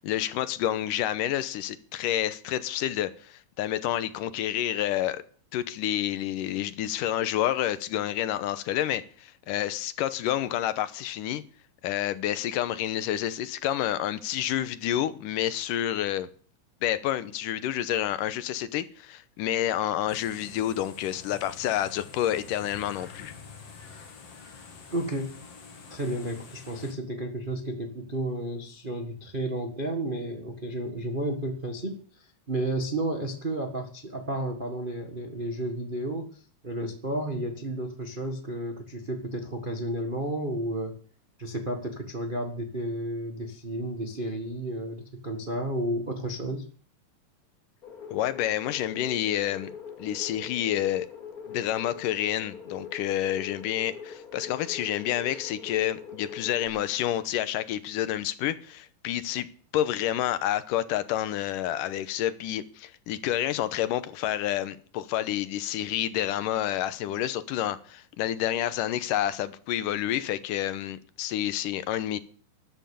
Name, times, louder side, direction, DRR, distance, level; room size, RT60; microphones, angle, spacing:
voice 1, 0.0-5.2 5.5-11.4 11.8-16.3 16.8-23.3 48.1-49.7 50.0-51.1 51.5-59.5 59.7-72.2, left 12 dB, 75° left, 2.4 m, -29 dB
sound 1, 20.1-26.9, left 5 dB, 45° left, 3.2 m, -47 dB
voice 2, 24.9-25.3 25.9-41.0 41.4-46.7, right 1 dB, 75° right, 0.4 m, -32 dB
sound 2, 47.8-56.7, left 7 dB, 30° left, 2.4 m, -43 dB
13.0 x 11.5 x 7.0 m
omnidirectional pair, 4.0 m